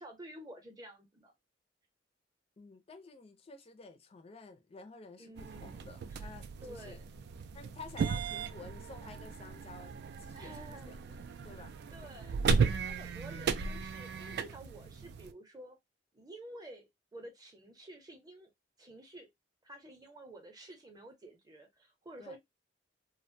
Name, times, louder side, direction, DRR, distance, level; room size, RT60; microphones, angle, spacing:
voice 1, 0.0-1.3 5.2-5.8 6.1-6.4 6.6-7.0 10.3-10.9 11.9-15.8 16.1-18.5 18.8-19.3 19.6-22.4, right 1 dB, 20° right, 0.7 m, -51 dB
voice 2, 2.6-7.0 7.5-9.9 10.2-11.2 11.4-11.7 22.2-22.4, left 4 dB, 30° left, 0.4 m, -51 dB
sound 1, 5.4-15.3, right 5 dB, 60° right, 0.3 m, -36 dB
2.4 x 2.1 x 2.6 m
head